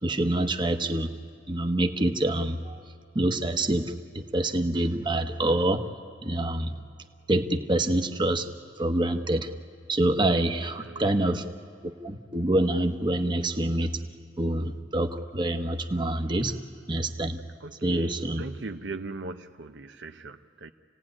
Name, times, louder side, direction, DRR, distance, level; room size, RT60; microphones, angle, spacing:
voice 1, 0.0-1.1 1.5-2.8 3.1-3.8 4.1-5.9 6.2-6.8 7.3-8.5 8.8-9.5 9.9-11.5 11.8-13.9 14.4-16.6 16.9-17.4 17.8-18.4, right 1 dB, 25° right, 6 dB, 1.1 m, -26 dB
voice 2, 10.7-11.3 17.6-20.7, right 3 dB, 70° right, 7 dB, 0.7 m, -40 dB
28.5 x 17.0 x 9.8 m, 2.1 s
head